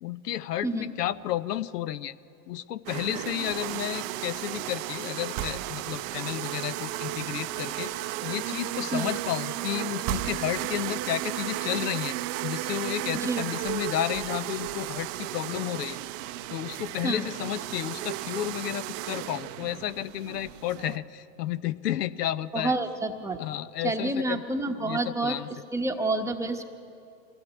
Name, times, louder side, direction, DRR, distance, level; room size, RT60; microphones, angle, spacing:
voice 1, 0.0-2.1 2.5-12.1 12.4-16.0 16.5-22.7 23.4-24.4 24.8-25.5, left 12 dB, 75° left, 15 dB, 0.8 m, -32 dB
sound 1, 2.9-21.0, right 14 dB, 35° right, 0.6 m, -34 dB
voice 2, 13.1-13.5 17.0-17.3 22.5-23.4 23.8-25.4 25.7-26.6, right 2 dB, 5° right, 4 dB, 0.9 m, -29 dB
24.0 x 16.5 x 8.2 m, 2.6 s
hypercardioid pair, 125°, 48 cm